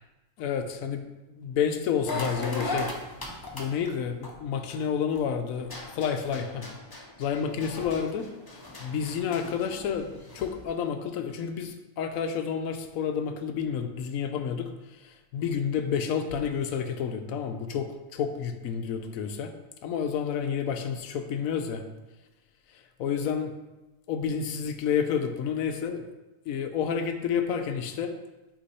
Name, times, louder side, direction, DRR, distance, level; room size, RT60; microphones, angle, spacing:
voice 1, 0.4-2.9 3.5-6.6 7.2-8.3 8.8-19.5 19.8-21.8 22.7-23.5 24.1-26.0 26.5-28.1, left 7 dB, 90° left, 7 dB, 1.0 m, -30 dB
sound 1, 2.1-5.2 5.6-10.6, left 2 dB, 30° left, 0.4 m, -38 dB
8.2 x 3.0 x 4.1 m, 1.1 s
omnidirectional pair, 1.4 m